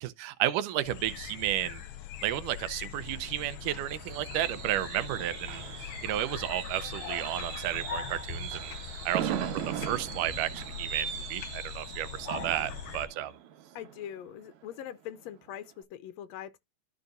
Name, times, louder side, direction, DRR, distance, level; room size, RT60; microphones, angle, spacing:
voice 1, 0.0-1.8 2.2-8.8 9.1-13.3, right 13 dB, 80° right, 2.2 m, -32 dB
sound 1, 0.8-13.1, left 8 dB, 70° left, 1.4 m, -41 dB
Fireworks, 3.0-14.7 15.1-15.4 15.7-15.8, right 9 dB, 65° right, 2.3 m, -40 dB
voice 2, 13.7-16.6, left 10 dB, 90° left, 1.5 m, -42 dB
13.5 x 5.3 x 2.5 m
omnidirectional pair, 3.8 m